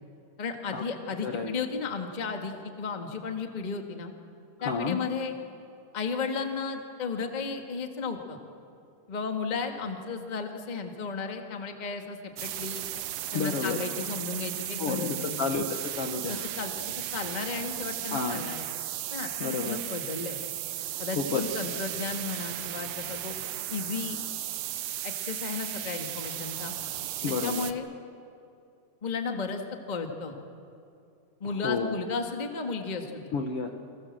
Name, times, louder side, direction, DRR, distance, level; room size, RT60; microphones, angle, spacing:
voice 1, 0.4-4.1 4.6-5.3 5.9-8.4 9.1-12.8 13.3-15.6 16.3-18.7 19.1-20.4 21.0-23.3 23.7-24.2 25.0-26.7 27.4-27.8 29.0-29.6 29.9-30.3 31.4-33.2, left 4 dB, 20° left, 4 dB, 1.1 m, -34 dB
voice 2, 1.2-1.6 4.6-5.0 13.3-13.8 14.8-16.5 18.1-18.4 19.4-19.8 21.1-21.6 27.2-27.7 31.6-31.9 33.3-33.7, left 5 dB, 60° left, 4 dB, 1.7 m, -30 dB
sound 1, 12.4-27.7, right 12 dB, 80° right, 1.4 m, -35 dB
29.5 x 24.5 x 7.5 m, 2.6 s
omnidirectional pair, 4.0 m